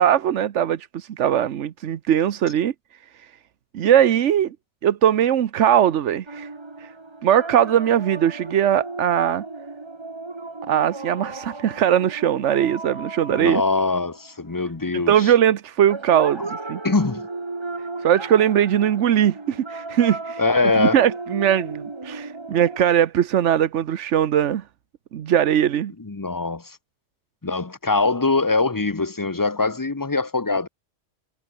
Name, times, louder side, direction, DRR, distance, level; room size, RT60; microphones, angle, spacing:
voice 1, 0.0-2.7 3.2-3.3 3.7-4.5 4.8-6.5 6.8-6.9 7.2-9.4 10.7-13.6 14.9-16.8 18.0-20.4 20.8-24.6 25.1-25.9, right 10 dB, 75° right, 1.1 m, -20 dB
sound 1, 6.3-14.5 15.9-22.8, right 3 dB, 25° right, 1.4 m, -35 dB
voice 2, 13.3-15.3 16.8-17.3 20.4-21.0 26.0-26.8 27.4-30.7, left 3 dB, 20° left, 0.9 m, -22 dB
omnidirectional pair, 1.3 m